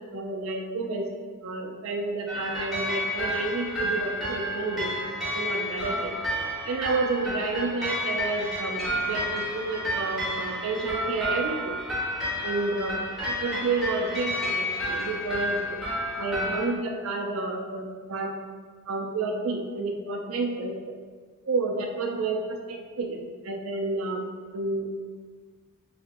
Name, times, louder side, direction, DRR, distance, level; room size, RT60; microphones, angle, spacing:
voice 1, 0.1-1.1 1.4-4.9 5.3-6.1 6.6-11.8 12.4-13.0 13.2-15.8 16.2-18.3 18.9-21.0 21.4-24.2 24.5-24.9, right 3 dB, 70° right, 2 dB, 0.5 m, -30 dB
sound 1, 2.3-16.7, equal, ahead, 1.2 m, -31 dB
4.0 x 2.7 x 2.5 m, 1.5 s
head